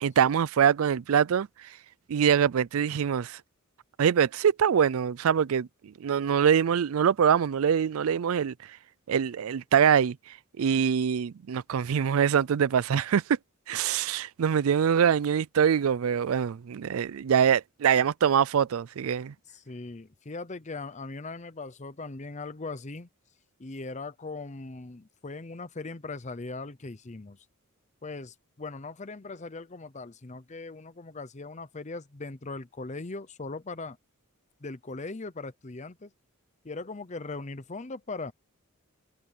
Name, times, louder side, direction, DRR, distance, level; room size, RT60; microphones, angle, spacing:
voice 1, 0.0-1.8 2.1-3.4 4.0-8.8 9.1-13.4 13.7-19.3, right 8 dB, 75° right, 0.4 m, -24 dB
voice 2, 19.5-23.1 23.6-27.5 28.0-34.0 34.6-36.1 36.6-38.3, left 3 dB, 35° left, 0.7 m, -39 dB
head